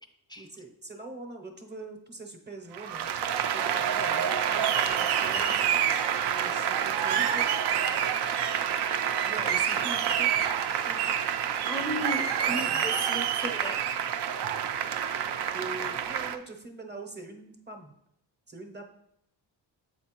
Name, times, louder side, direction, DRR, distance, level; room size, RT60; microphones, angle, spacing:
voice 1, 0.4-3.1 3.5-5.6 6.3-7.2 9.2-10.2 10.8-11.2 12.7-12.9 15.5-17.9 18.5-18.8, right 2 dB, 25° right, 4 dB, 0.7 m, -43 dB
Applause, 2.7-16.4, right 8 dB, 60° right, 0.5 m, -27 dB
voice 2, 11.7-13.8, equal, 10° left, 5 dB, 0.4 m, -35 dB
7.2 x 4.4 x 2.9 m, 0.73 s
cardioid pair, 105°, 45 cm